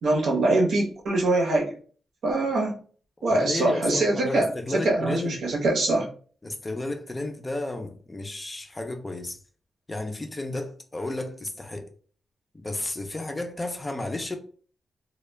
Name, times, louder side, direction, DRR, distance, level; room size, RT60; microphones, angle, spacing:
voice 1, 0.0-1.7 2.2-2.7 3.2-4.5 4.8-6.1, right 2 dB, 80° right, 0.8 m, -23 dB
voice 2, 3.3-5.5 6.4-9.4 9.9-11.9 12.5-14.4, left 2 dB, 20° left, 0.4 m, -32 dB
2.2 x 2.1 x 3.2 m
wide cardioid pair, 125°, 0 cm